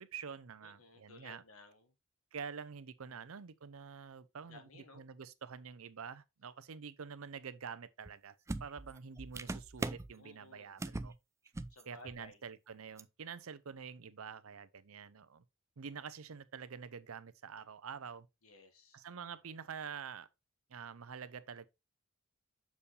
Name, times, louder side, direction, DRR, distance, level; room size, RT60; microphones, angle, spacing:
voice 1, 0.0-1.4 2.3-8.4 8.6-11.1 11.9-15.4 15.8-18.3 18.9-20.3 20.7-21.7, right 6 dB, 80° right, 0.6 m, -47 dB
voice 2, 0.6-1.9 3.0-3.3 4.4-5.0 10.2-10.9 11.7-12.4 18.4-19.2, left 3 dB, 85° left, 1.6 m, -58 dB
sound 1, 8.1-8.2 8.5-10.1 10.8-11.1 11.5-11.8 12.1-12.2 13.0-13.1, right 2 dB, 15° right, 0.3 m, -40 dB
7.0 x 4.6 x 3.2 m
head